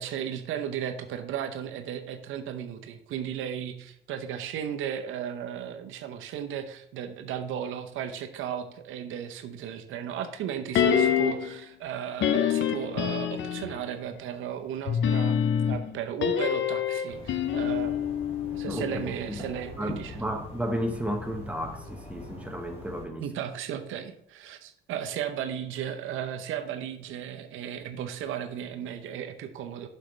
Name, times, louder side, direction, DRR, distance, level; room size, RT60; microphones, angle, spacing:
voice 1, 0.0-15.4 15.7-18.2 18.5-20.2 23.2-29.9, right 9 dB, 85° right, 7 dB, 0.7 m, -35 dB
sound 1, 10.7-11.6 12.2-13.8 14.9-19.1 19.4-19.5, left 8 dB, 70° left, 0.7 m, -26 dB
sound 2, 17.1-23.1, left 2 dB, 30° left, 2.9 m, -43 dB
voice 2, 18.7-19.4 19.8-23.2, equal, 5° right, 4 dB, 1.2 m, -33 dB
7.9 x 6.4 x 3.2 m, 0.70 s
cardioid pair, 90°, 20 cm